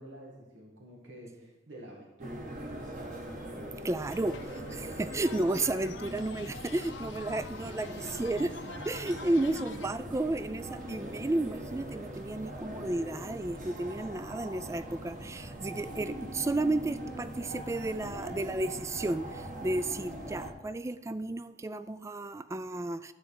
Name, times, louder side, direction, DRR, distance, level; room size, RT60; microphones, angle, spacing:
voice 1, 0.0-2.4 9.3-9.8, right 1 dB, 90° right, -2 dB, 1.8 m, -49 dB
sound 1, 2.2-20.5, equal, 45° right, 1.7 m, -41 dB
voice 2, 3.8-8.5 8.9-23.1, right 2 dB, 15° right, 13 dB, 0.3 m, -33 dB
sound 2, 4.0-9.9, left 4 dB, 90° left, 0.9 m, -47 dB
13.0 x 4.4 x 8.4 m, 1.1 s
head